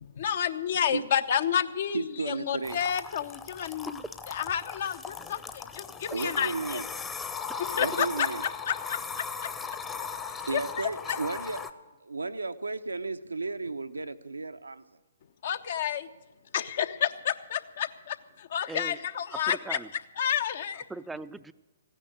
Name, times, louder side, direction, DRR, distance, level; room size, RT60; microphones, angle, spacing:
voice 1, 0.0-4.0 4.3-7.0 7.8-8.3 8.7-9.5 10.5-10.6 11.1-11.2 15.4-16.1 16.5-19.8 20.2-20.8, left 9 dB, 55° left, 12 dB, 0.9 m, -30 dB
voice 2, 1.9-2.8 6.1-6.9 7.8-8.4 10.5-11.6 12.0-14.8, right 3 dB, 90° right, 9 dB, 0.8 m, -33 dB
sound 1, 2.6-11.7, left 6 dB, 15° left, 0.9 m, -38 dB
voice 3, 18.7-19.0 19.3-19.9 20.9-21.5, right 3 dB, 5° right, 13 dB, 0.5 m, -39 dB
15.5 x 9.9 x 7.9 m, 1.1 s
figure-of-eight pair, 130°, 0 cm